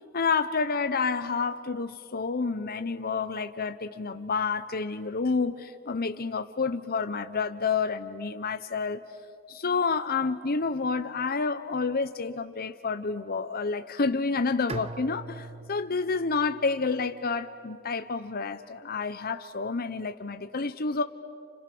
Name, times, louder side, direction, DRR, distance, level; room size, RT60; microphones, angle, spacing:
voice 1, 0.1-9.0 9.5-21.0, left 4 dB, 45° left, 9 dB, 0.9 m, -29 dB
Bowed string instrument, 14.7-17.7, right 3 dB, 30° right, 0.7 m, -42 dB
30.0 x 29.5 x 6.2 m, 2.3 s
head